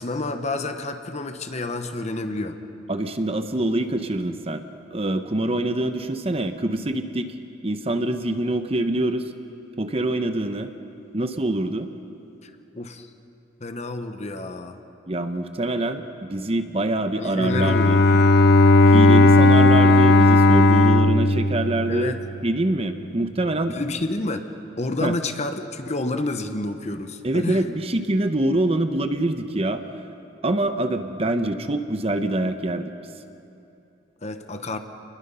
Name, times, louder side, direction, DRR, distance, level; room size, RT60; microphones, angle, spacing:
voice 1, 0.0-2.6 12.4-13.1 13.6-14.8 17.1-18.0 21.9-22.2 23.7-24.5 24.8-27.7 34.2-34.8, left 2 dB, 35° left, 8 dB, 1.1 m, -29 dB
voice 2, 2.9-4.6 4.9-7.3 7.6-9.3 9.8-10.7 11.1-11.9 15.1-18.0 18.9-22.2 22.4-23.8 25.0-25.1 27.2-29.8 30.4-32.9, right 1 dB, 30° right, 8 dB, 0.9 m, -25 dB
Bowed string instrument, 17.4-22.4, left 2 dB, 55° left, 0.7 m, -15 dB
28.5 x 21.0 x 5.6 m, 2.7 s
head